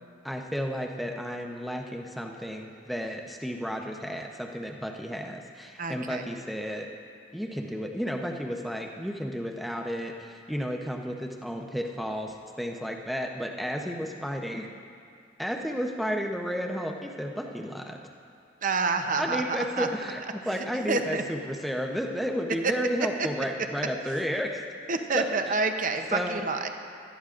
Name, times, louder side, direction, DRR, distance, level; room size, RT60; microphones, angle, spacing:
voice 1, 0.2-6.9 7.3-14.7 15.4-18.0 19.2-24.6 25.1-25.3 26.1-26.5, equal, ahead, 1 dB, 0.8 m, -32 dB
voice 2, 5.8-6.2 18.6-19.9 20.5-21.2 22.6-22.7 23.2-23.3 24.9-26.7, right 4 dB, 45° right, 6 dB, 0.7 m, -28 dB
19.0 x 13.0 x 2.5 m, 2.3 s
head